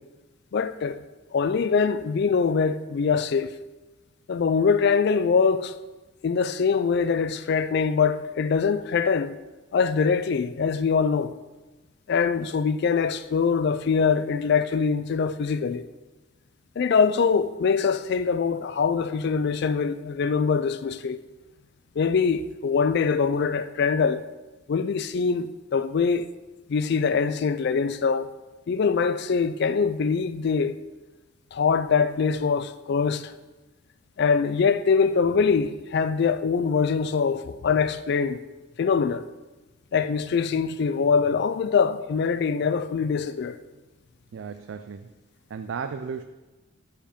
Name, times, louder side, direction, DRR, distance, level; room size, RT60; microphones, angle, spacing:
voice 1, 0.5-1.0 1.3-3.5 4.3-5.7 6.2-9.3 9.7-11.3 12.1-15.8 16.8-21.2 22.0-24.2 24.7-26.3 26.7-28.3 28.7-30.8 31.5-33.3 34.2-38.4 38.8-39.2 39.9-43.6, left 5 dB, 55° left, 0.3 m, -23 dB
voice 2, 44.3-45.1 45.5-46.2, right 6 dB, 60° right, 0.3 m, -34 dB
6.8 x 5.1 x 5.1 m
head